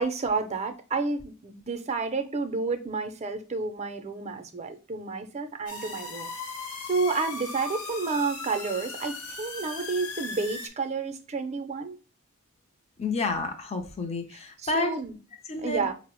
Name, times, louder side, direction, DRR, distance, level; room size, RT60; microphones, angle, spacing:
voice 1, 0.0-6.3 6.8-12.0 14.6-15.1 15.6-15.9, right 4 dB, 30° right, 0.5 m, -30 dB
sound 1, 5.7-10.7, left 3 dB, 85° left, 1.0 m, -38 dB
voice 2, 13.0-15.0 15.4-15.9, left 2 dB, 30° left, 0.6 m, -30 dB
5.3 x 2.0 x 3.0 m
head